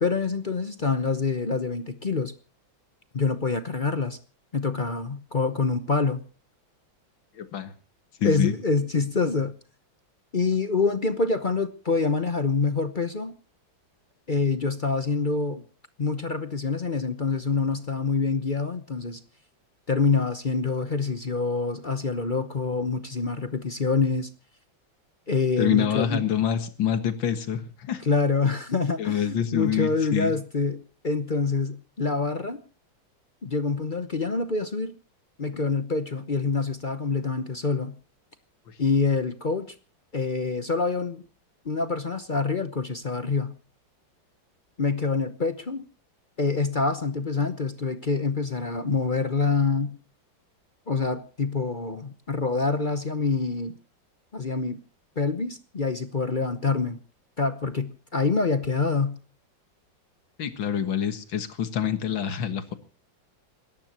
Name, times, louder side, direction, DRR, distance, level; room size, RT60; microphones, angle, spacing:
voice 1, 0.0-2.3 3.1-4.2 4.5-6.3 8.2-9.5 10.3-13.4 14.3-15.6 16.0-19.2 19.9-24.3 25.3-26.2 28.0-32.6 33.4-35.0 35.4-37.9 38.8-39.7 40.1-41.2 41.6-43.6 44.8-45.8 46.4-49.9 50.9-53.8 54.3-54.8 55.2-57.0 57.4-59.2, left 4 dB, 40° left, 10 dB, 0.7 m, -26 dB
voice 2, 7.4-7.7 8.2-8.5 25.6-28.0 29.0-30.3 60.4-62.7, left 9 dB, 75° left, 10 dB, 2.3 m, -26 dB
28.5 x 14.0 x 2.9 m, 0.37 s
omnidirectional pair, 2.1 m